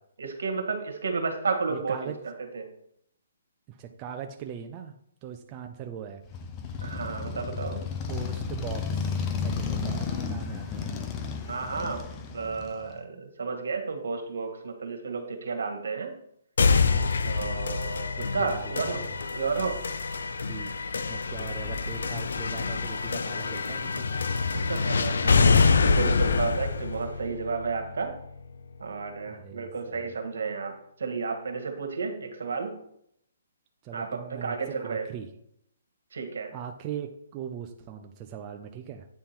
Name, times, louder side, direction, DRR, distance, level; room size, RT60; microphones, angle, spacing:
voice 1, 0.2-2.6 6.8-7.8 11.5-12.0 12.3-16.1 17.2-19.0 19.3-19.8 24.5-28.1 28.8-32.7 33.9-35.1 36.1-36.5, right 4 dB, 80° right, 4 dB, 1.5 m, -32 dB
voice 2, 1.7-2.2 3.7-4.9 5.2-6.2 6.7-6.9 8.1-11.2 16.8-17.3 18.2-19.2 20.3-20.7 21.1-24.1 29.3-30.1 33.8-35.3 36.5-39.1, right 8 dB, 25° right, 5 dB, 0.4 m, -40 dB
Motorcycle, 6.3-13.0, left 5 dB, 20° left, 0.6 m, -33 dB
sound 1, 16.6-28.5, left 4 dB, 80° left, 0.5 m, -26 dB
8.9 x 3.6 x 4.4 m, 0.72 s
hypercardioid pair, 160°, 0 cm